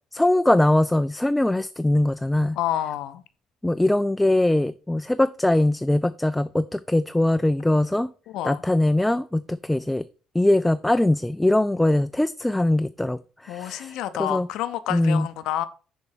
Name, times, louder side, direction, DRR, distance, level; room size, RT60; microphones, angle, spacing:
voice 1, 0.1-2.6 3.6-8.1 8.4-10.0 10.3-14.5 14.9-15.3, left 1 dB, 10° left, 0.3 m, -22 dB
voice 2, 2.6-3.2 8.3-8.6 13.5-15.7, left 12 dB, 60° left, 0.6 m, -28 dB
6.7 x 4.6 x 6.2 m
figure-of-eight pair, 50°, 0 cm